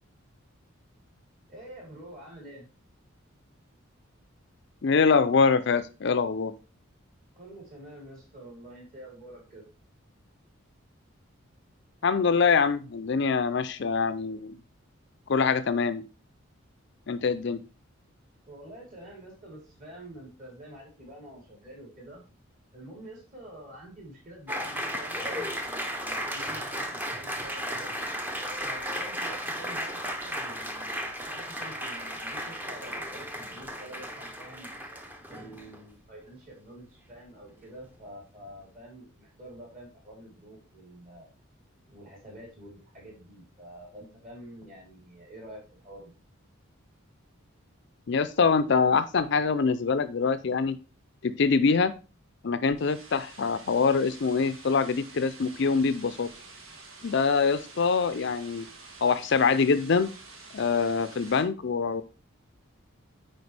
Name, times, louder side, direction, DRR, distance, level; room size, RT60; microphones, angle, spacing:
voice 1, 1.5-2.7 7.4-9.6 18.5-22.2 22.7-27.9 28.6-34.7 35.3-41.3 41.9-46.2, right 1 dB, 40° right, -2 dB, 3.6 m, -47 dB
voice 2, 4.8-6.5 12.0-14.6 15.3-16.0 17.1-17.6 48.1-50.8 51.2-51.9 52.4-56.3 57.0-58.7 59.0-60.1 60.5-62.0, left 5 dB, 55° left, 12 dB, 0.5 m, -24 dB
Applause, 24.5-35.8, equal, 10° right, 0.7 m, -35 dB
sound 1, 52.8-61.4, right 3 dB, 75° right, 1.6 m, -49 dB
9.5 x 4.5 x 3.3 m, 0.32 s
head